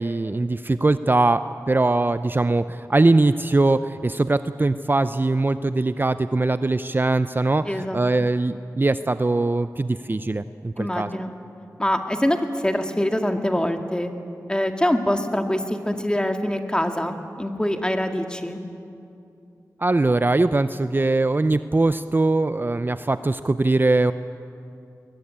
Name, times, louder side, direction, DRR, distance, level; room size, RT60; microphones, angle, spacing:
voice 1, 0.0-11.1 19.8-24.1, right 2 dB, 30° right, 12 dB, 0.6 m, -21 dB
voice 2, 7.7-8.3 10.8-11.3 11.8-14.1 14.5-18.6, left 1 dB, 15° left, 5 dB, 2.0 m, -24 dB
22.5 x 21.0 x 8.8 m, 2.6 s
cardioid pair, 55°, 6 cm